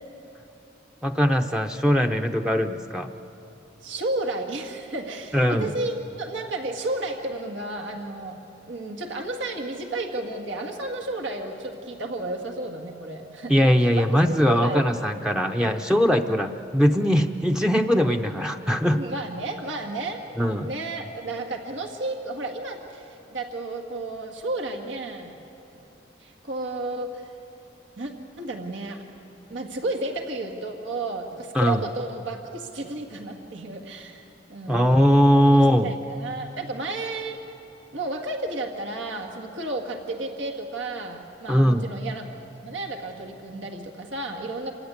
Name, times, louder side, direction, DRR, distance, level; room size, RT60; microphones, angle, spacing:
voice 1, 1.0-3.1 5.3-5.7 13.5-19.0 20.4-20.7 31.5-31.8 34.7-35.9 41.5-41.9, equal, 5° right, 4 dB, 0.5 m, -20 dB
voice 2, 3.8-8.4 8.7-14.9 18.9-25.4 25.7-25.8 26.2-27.3 28.0-28.1 28.4-29.0 29.5-34.2 34.5-34.9 35.4-35.6 35.8-37.4 37.9-42.3 42.6-44.7, right 2 dB, 85° right, 2 dB, 1.9 m, -32 dB
27.0 x 16.0 x 9.6 m, 2.8 s
head